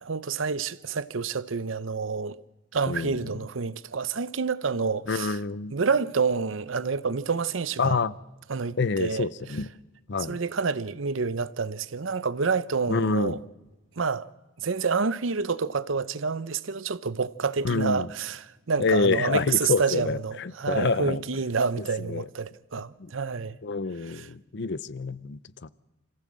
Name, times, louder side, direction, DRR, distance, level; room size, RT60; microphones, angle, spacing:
voice 1, 0.0-2.4 2.7-5.4 5.7-8.0 8.5-9.6 10.3-13.4 14.0-14.3 14.6-23.6 24.0-24.3, right 5 dB, 70° right, 0.7 m, -28 dB
voice 2, 2.9-3.3 5.1-5.7 7.8-8.1 8.8-9.7 10.1-10.4 12.9-13.4 17.6-18.1 18.8-21.2 22.1-22.2 23.0-23.1 23.6-25.7, left 4 dB, 60° left, 0.6 m, -27 dB
26.0 x 15.5 x 7.5 m
head